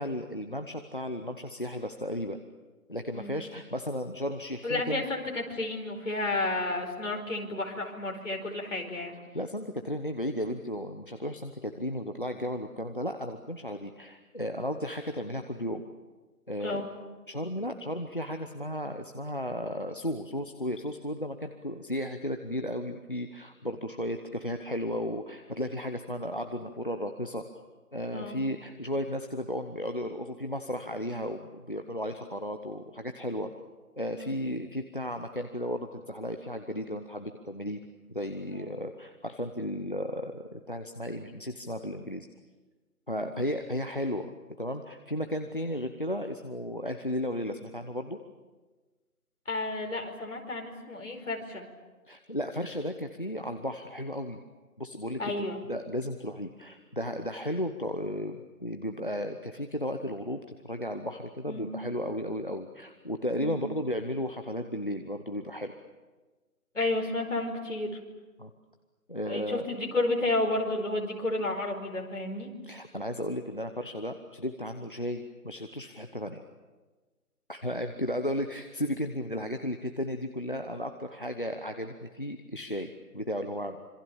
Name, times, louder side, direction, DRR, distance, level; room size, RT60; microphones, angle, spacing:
voice 1, 0.0-2.4 2.9-5.1 9.3-15.8 16.5-16.9 17.3-27.4 27.9-33.5 34.0-37.8 38.1-42.3 43.1-44.3 44.6-48.2 52.1-54.4 54.8-65.7 68.4-68.5 69.1-69.7 72.6-76.4 77.5-83.9, equal, 35° left, 8 dB, 0.9 m, -34 dB
voice 2, 4.6-9.2 16.6-16.8 28.1-28.4 34.2-34.3 38.5-38.7 43.1-43.3 49.5-51.7 55.2-55.6 61.5-61.7 63.4-63.6 66.8-68.0 69.2-72.5, left 2 dB, 50° left, 1 dB, 5.0 m, -31 dB
26.5 x 25.5 x 7.1 m, 1.3 s
figure-of-eight pair, 180°, 46 cm